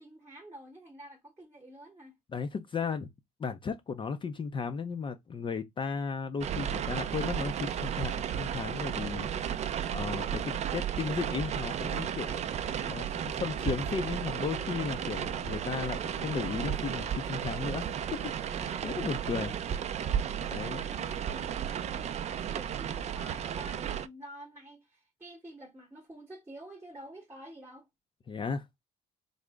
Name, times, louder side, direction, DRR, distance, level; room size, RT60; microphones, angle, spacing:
voice 1, 0.0-2.1 20.5-27.9, right 1 dB, 15° right, 0.9 m, -49 dB
voice 2, 2.3-3.1 3.4-9.3 9.9-12.4 12.8-19.5 20.5-20.9 28.3-28.6, left 5 dB, 30° left, 0.5 m, -35 dB
sound 1, 6.4-24.1, right 9 dB, 40° right, 0.4 m, -34 dB
sound 2, 7.0-21.4, left 5 dB, 65° left, 0.9 m, -54 dB
3.8 x 2.0 x 3.3 m
cardioid pair, 110°, 17 cm